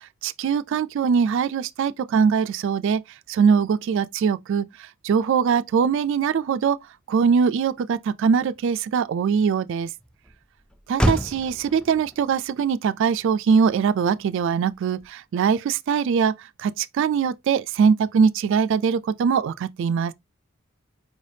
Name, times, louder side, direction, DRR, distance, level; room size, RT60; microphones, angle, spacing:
voice 1, 0.2-3.0 3.3-6.8 7.1-9.9 10.9-20.1, right 6 dB, 60° right, 0.3 m, -22 dB
Motor vehicle (road), 6.8-15.5, equal, 5° left, 0.4 m, -33 dB
4.6 x 3.3 x 2.6 m
head